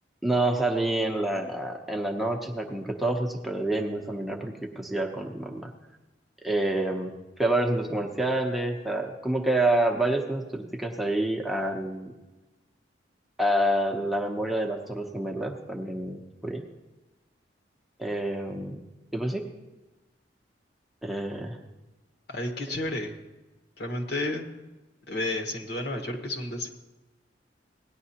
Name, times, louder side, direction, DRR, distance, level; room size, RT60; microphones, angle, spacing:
voice 1, 0.2-5.7 6.4-12.1 13.4-16.6 18.0-18.8 19.1-19.4 21.0-21.6, right 1 dB, ahead, 0 dB, 0.7 m, -28 dB
voice 2, 22.3-23.2 23.8-24.4 25.1-26.7, left 1 dB, 65° left, 2 dB, 1.3 m, -31 dB
17.5 x 9.9 x 2.8 m, 1.1 s
head